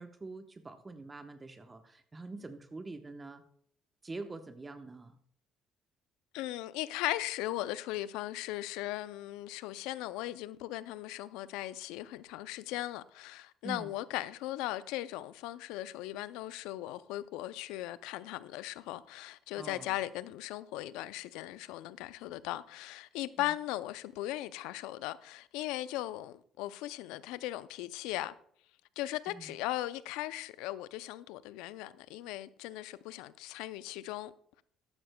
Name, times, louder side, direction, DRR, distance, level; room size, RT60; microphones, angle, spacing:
voice 1, 0.0-3.4 4.0-5.2 13.6-13.9 19.6-20.0 23.4-23.5 29.3-29.5, right 3 dB, 25° right, 0.9 m, -45 dB
voice 2, 6.3-28.3 29.0-34.3, left 15 dB, 80° left, 0.4 m, -38 dB
13.0 x 10.0 x 2.2 m
hypercardioid pair, 65°, 0 cm